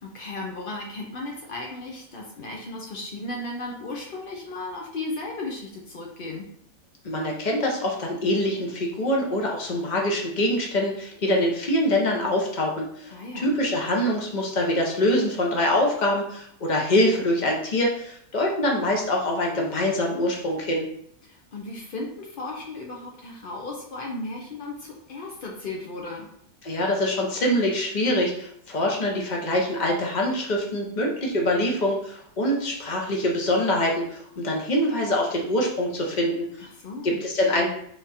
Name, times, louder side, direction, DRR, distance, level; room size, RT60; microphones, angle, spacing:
voice 1, 0.0-6.5 13.1-13.5 21.2-26.3 36.6-37.2, left 2 dB, 75° left, -1 dB, 0.5 m, -35 dB
voice 2, 7.0-20.9 26.6-36.5 37.0-37.7, left 1 dB, 40° left, 0 dB, 0.7 m, -24 dB
3.6 x 3.5 x 4.2 m, 0.68 s
omnidirectional pair, 1.9 m